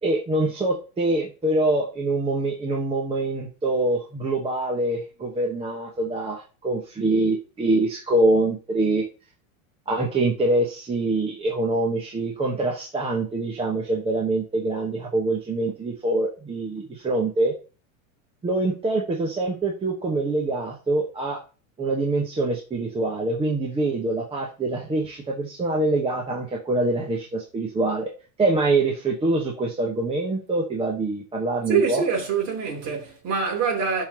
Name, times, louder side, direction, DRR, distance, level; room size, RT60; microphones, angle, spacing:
voice 1, 0.0-9.0 9.9-17.5 18.4-21.4 21.8-28.1 28.4-32.0, right 2 dB, 15° right, 1.1 m, -24 dB
voice 2, 31.7-34.0, right 5 dB, 40° right, 2.9 m, -24 dB
11.5 x 3.9 x 2.9 m
supercardioid pair, 130°, 41 cm